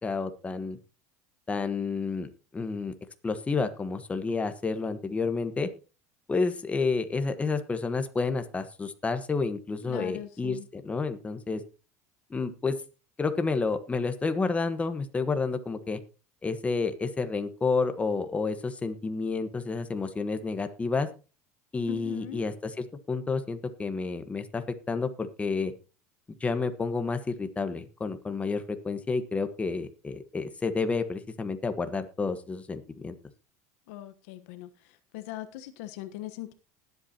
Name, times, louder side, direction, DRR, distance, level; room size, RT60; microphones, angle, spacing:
voice 1, 0.0-0.8 1.5-2.9 3.2-5.7 6.3-11.6 12.3-12.7 13.2-16.0 16.4-21.1 21.7-25.7 26.4-33.2, left 4 dB, 15° left, 1.3 m, -30 dB
voice 2, 9.9-10.7 21.9-22.4 33.9-34.7 35.1-36.5, left 13 dB, 75° left, 1.1 m, -40 dB
19.5 x 8.3 x 2.9 m
supercardioid pair, 110°, 8 cm